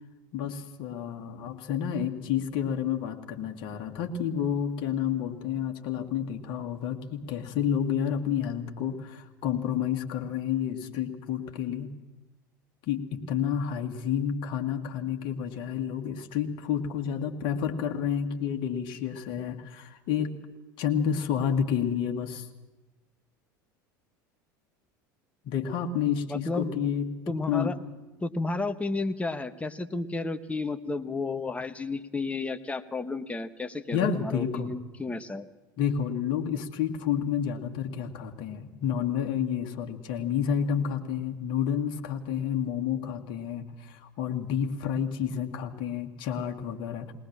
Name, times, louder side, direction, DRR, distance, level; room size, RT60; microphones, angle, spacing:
voice 1, 0.3-11.9 12.9-20.3 20.8-22.5 25.5-27.7 33.9-34.7 35.8-47.1, left 8 dB, 55° left, 4 dB, 1.9 m, -30 dB
voice 2, 26.3-26.9 27.3-27.8 28.2-35.5, left 3 dB, 10° left, 9 dB, 1.2 m, -32 dB
20.5 x 19.0 x 7.4 m, 1.1 s
hypercardioid pair, 75°, 11 cm